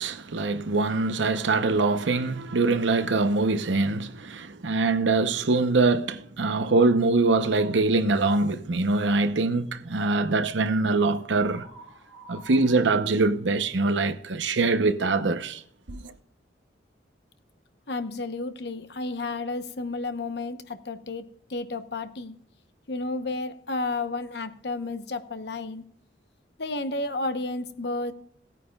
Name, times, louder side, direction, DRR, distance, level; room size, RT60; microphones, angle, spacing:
voice 1, 0.0-11.7 12.3-15.6 15.9-16.1, right 3 dB, 85° right, 0.8 m, -23 dB
sound 1, 7.4-8.0 11.3-14.0, right 1 dB, 5° left, 1.9 m, -50 dB
voice 2, 17.9-22.4 22.9-25.8 26.6-28.1, left 2 dB, 65° left, 0.9 m, -32 dB
18.0 x 9.1 x 2.3 m
head